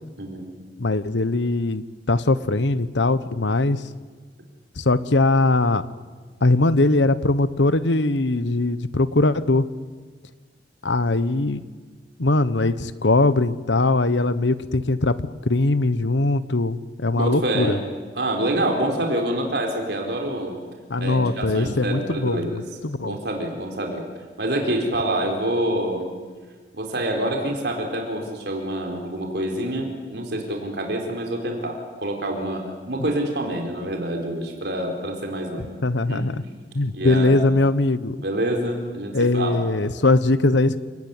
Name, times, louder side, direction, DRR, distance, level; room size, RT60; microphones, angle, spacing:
voice 1, 0.2-0.5 17.2-17.8 18.1-20.6 21.0-22.6 23.0-24.0 24.4-26.1 26.7-35.7 36.1-36.3 36.9-37.3 38.2-39.7, right 1 dB, 65° right, 2 dB, 4.3 m, -26 dB
voice 2, 0.8-3.8 4.8-5.8 6.4-9.7 10.8-11.6 12.2-15.2 15.5-17.8 20.9-23.2 35.8-36.3 36.7-38.2 39.1-40.8, left 2 dB, 85° left, 14 dB, 1.2 m, -21 dB
29.0 x 19.5 x 9.7 m, 1.5 s
head